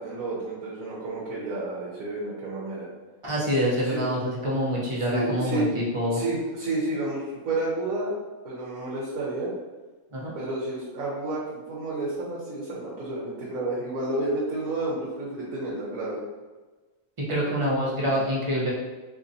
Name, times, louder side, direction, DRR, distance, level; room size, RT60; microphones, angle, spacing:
voice 1, 0.0-2.9 3.9-4.0 5.1-5.6 6.1-8.1 8.4-9.5 10.3-16.2, right 2 dB, 65° right, -6 dB, 1.2 m, -30 dB
voice 2, 3.2-6.2 10.1-10.4 17.3-18.7, equal, 30° right, -5 dB, 0.6 m, -26 dB
3.8 x 3.0 x 2.6 m, 1.3 s
omnidirectional pair, 1.6 m